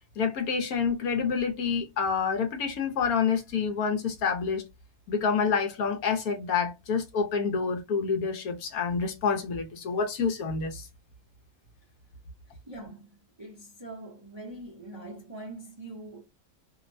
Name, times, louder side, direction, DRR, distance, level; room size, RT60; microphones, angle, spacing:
voice 1, 0.2-4.6 5.1-10.9, left 6 dB, 70° left, 1.2 m, -28 dB
voice 2, 12.5-16.2, right 2 dB, 30° right, 0.5 m, -43 dB
3.0 x 2.1 x 2.5 m
omnidirectional pair, 1.6 m